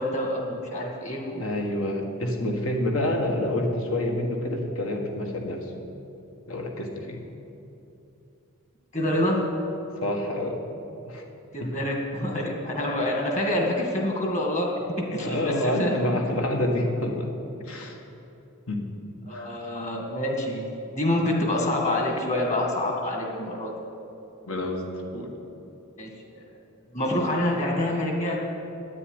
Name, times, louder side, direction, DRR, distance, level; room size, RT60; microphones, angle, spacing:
voice 1, 0.0-1.5 3.0-3.2 8.9-9.5 11.5-16.0 16.3-16.4 16.9-17.0 19.3-23.7 26.0-26.4 26.9-28.4, left 1 dB, 30° left, 1 dB, 2.0 m, -27 dB
voice 2, 1.4-5.7 6.5-7.2 10.0-10.6 11.1-11.2 11.6-11.7 15.2-17.3 17.6-18.0 18.7-18.8 19.3-19.6 24.4-24.8 25.1-25.3, left 1 dB, 70° left, 2 dB, 1.8 m, -27 dB
9.8 x 9.3 x 9.8 m, 2.9 s
head